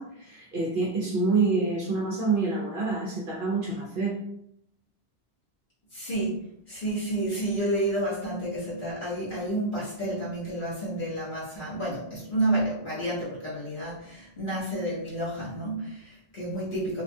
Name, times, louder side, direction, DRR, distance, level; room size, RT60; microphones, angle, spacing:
voice 1, 0.0-4.3, right 3 dB, 60° right, -3 dB, 0.7 m, -27 dB
voice 2, 5.9-6.4 6.7-17.0, right 1 dB, 50° left, -9 dB, 1.2 m, -30 dB
2.8 x 2.3 x 2.6 m, 0.75 s
omnidirectional pair, 1.2 m